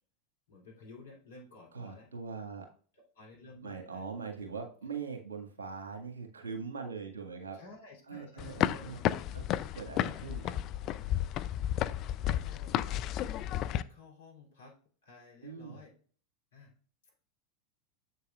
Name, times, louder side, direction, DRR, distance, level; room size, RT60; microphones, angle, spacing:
voice 1, 0.5-2.1 2.9-4.0 4.4-4.6 7.5-9.3 10.0-10.3 11.9-14.8 15.0-15.9 16.5-16.7 17.0-17.1, left 3 dB, 70° left, 0 dB, 3.0 m, -54 dB
voice 2, 1.7-2.7 3.6-7.6 8.1-9.0 9.3-9.4 9.7-10.5 15.4-15.8, right 5 dB, 75° right, 3 dB, 1.8 m, -41 dB
sound 1, 8.4-13.8, left 12 dB, 45° left, 0.4 m, -32 dB
7.8 x 6.8 x 2.4 m, 0.42 s
figure-of-eight pair, 85°, 0 cm